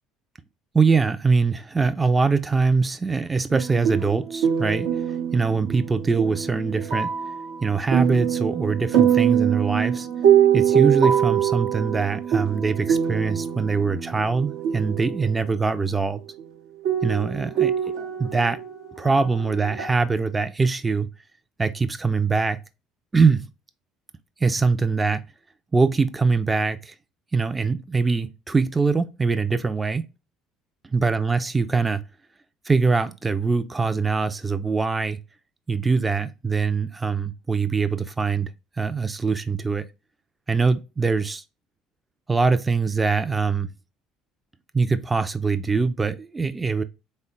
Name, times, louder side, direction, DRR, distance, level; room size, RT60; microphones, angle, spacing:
voice 1, 0.7-4.9 5.3-7.1 7.6-10.1 10.5-16.2 17.0-17.7 18.2-18.6 19.0-21.1 21.6-22.6 23.1-23.5 24.4-25.2 25.7-26.9 27.3-30.1 30.8-32.0 32.7-35.2 35.7-38.5 38.8-39.9 40.5-41.4 42.3-43.7 44.7-46.8, right 4 dB, 20° right, 0.4 m, -23 dB
sound 1, 3.5-15.5 16.4-16.5 16.8-19.9, right 9 dB, 75° right, 0.8 m, -24 dB
3.7 x 2.2 x 3.6 m
hypercardioid pair, 70°, 0 cm